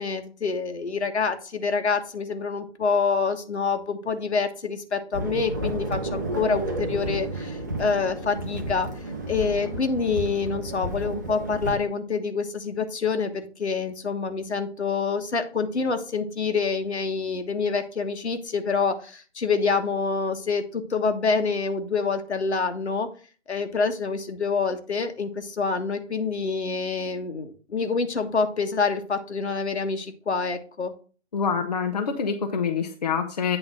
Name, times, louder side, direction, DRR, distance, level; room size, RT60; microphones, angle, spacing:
voice 1, 0.0-8.9 9.3-23.1 23.5-30.9, left 4 dB, 70° left, 7 dB, 1.5 m, -26 dB
sound 1, 5.1-11.8, right 1 dB, 15° right, 0.7 m, -31 dB
voice 2, 31.3-33.6, left 6 dB, 35° left, 4 dB, 0.8 m, -26 dB
8.9 x 3.8 x 6.0 m, 0.39 s
hypercardioid pair, 165°, 35 cm